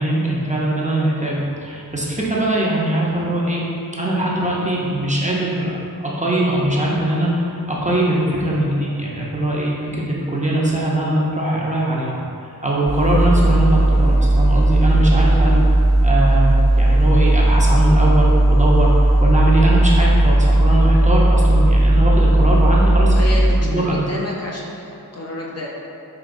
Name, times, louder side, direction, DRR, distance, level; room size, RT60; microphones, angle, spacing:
voice 1, 0.0-3.6 4.0-5.7 6.0-12.2 12.5-15.6 16.0-23.1 23.6-24.0, right 1 dB, 20° right, -5 dB, 0.6 m, -21 dB
sound 1, 12.9-23.5, right 1 dB, 55° right, 1.3 m, -15 dB
voice 2, 23.1-24.7 25.1-25.7, left 2 dB, 40° left, -4 dB, 0.6 m, -29 dB
4.7 x 2.8 x 2.6 m, 2.7 s
cardioid pair, 55°, 38 cm